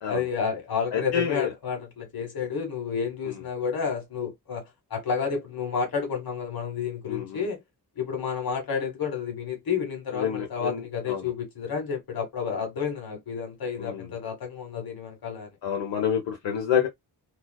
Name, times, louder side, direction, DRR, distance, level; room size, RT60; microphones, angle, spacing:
voice 1, 0.1-7.6 8.0-15.5, left 6 dB, 55° left, 1.2 m, -30 dB
voice 2, 0.9-1.5 3.3-3.4 7.1-7.4 10.1-11.3 13.8-14.1 15.6-16.9, left 8 dB, 80° left, 0.7 m, -28 dB
2.4 x 2.3 x 2.2 m
wide cardioid pair, 110°, 42 cm